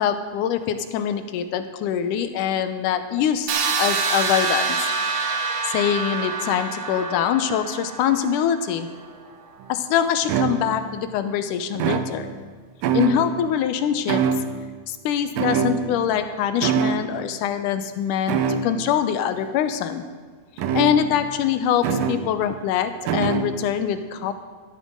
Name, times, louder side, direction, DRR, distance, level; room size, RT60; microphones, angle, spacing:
voice 1, 0.0-3.5 3.8-4.9 5.6-8.9 9.7-12.3 12.9-14.3 14.9-20.0 20.7-24.3, left 9 dB, 80° left, 9 dB, 2.2 m, -24 dB
sound 1, 3.5-9.3, right 4 dB, 60° right, 1.8 m, -26 dB
sound 2, 9.6-9.7 10.3-11.0 11.8-12.5 12.8-13.5 14.1-14.8 15.4-16.2 16.6-17.1 18.3-18.9 20.6-21.3 21.8-22.3 23.1-23.7, right 6 dB, 85° right, 2.5 m, -24 dB
15.5 x 13.5 x 3.7 m, 1.5 s
omnidirectional pair, 3.8 m